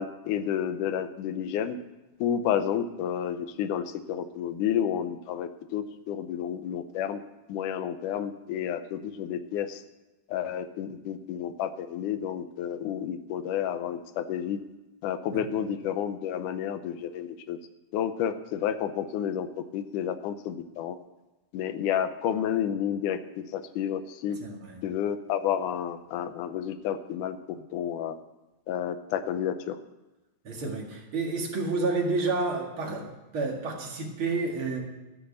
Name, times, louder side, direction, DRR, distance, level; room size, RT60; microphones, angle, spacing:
voice 1, 0.0-1.8 2.2-7.2 7.5-9.8 10.3-14.6 15.0-17.6 17.9-21.0 21.5-23.2 23.5-24.4 24.8-27.4 27.7-28.2 28.7-29.8, left 9 dB, 75° left, 10 dB, 2.1 m, -30 dB
voice 2, 24.3-24.8 30.4-34.8, right 3 dB, 45° right, 0 dB, 2.5 m, -30 dB
14.5 x 6.4 x 8.0 m, 1.1 s
omnidirectional pair, 3.9 m